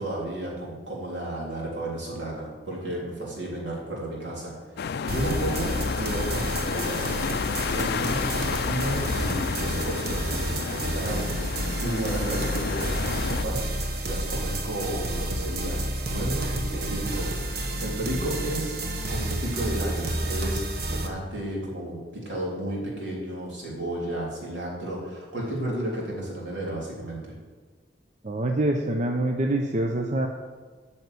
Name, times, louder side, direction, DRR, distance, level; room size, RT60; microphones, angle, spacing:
voice 1, 0.0-18.8 19.1-20.6 20.9-27.3, right 1 dB, 75° right, -4 dB, 3.4 m, -33 dB
sound 1, 4.8-13.4, left 6 dB, 60° left, 0.4 m, -31 dB
sound 2, 5.1-21.1, right 1 dB, 60° right, 1.1 m, -30 dB
voice 2, 28.2-30.3, right 1 dB, 40° right, 3 dB, 0.7 m, -25 dB
9.1 x 5.8 x 8.3 m, 1.5 s
head